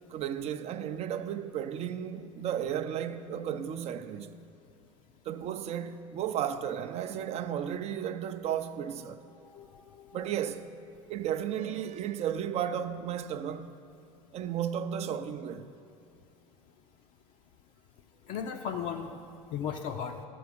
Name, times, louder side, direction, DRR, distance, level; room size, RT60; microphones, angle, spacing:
voice 1, 0.1-4.3 5.3-9.2 10.1-10.7 11.1-13.7 14.3-15.7, right 9 dB, 35° right, 0.5 m, -34 dB
voice 2, 9.4-10.3 18.3-19.1 19.5-20.2, left 7 dB, 45° left, 0.5 m, -36 dB
11.5 x 4.9 x 6.2 m
figure-of-eight pair, 75°, 18 cm